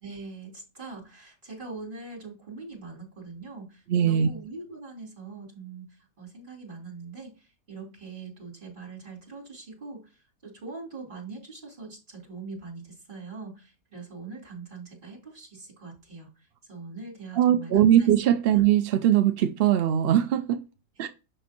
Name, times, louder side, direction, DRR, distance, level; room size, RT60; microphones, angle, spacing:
voice 1, 0.0-18.1 18.5-18.6 21.0-21.1, right 4 dB, 35° right, 3.6 m, -42 dB
voice 2, 3.9-4.3 17.4-20.6 21.0-21.1, right 10 dB, 65° right, 0.6 m, -21 dB
6.6 x 6.2 x 2.9 m
omnidirectional pair, 1.5 m